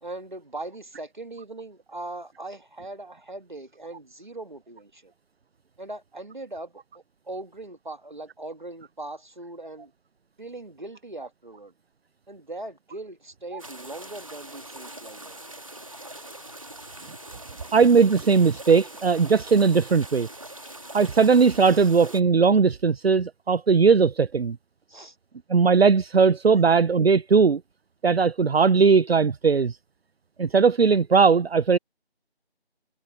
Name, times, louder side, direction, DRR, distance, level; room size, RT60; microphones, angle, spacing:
voice 1, 0.0-5.1 5.8-9.9 10.4-11.7 12.3-15.4 20.4-20.5 21.7-21.9 24.9-25.2 26.5-26.6, right 2 dB, 45° right, 1.8 m, -40 dB
sound 1, 13.6-22.2, right 1 dB, 30° right, 2.3 m, -42 dB
voice 2, 17.7-20.3 20.9-24.6 25.5-27.6 28.0-29.8 30.4-31.8, right 5 dB, 70° right, 0.6 m, -19 dB
figure-of-eight pair, 180°, 32 cm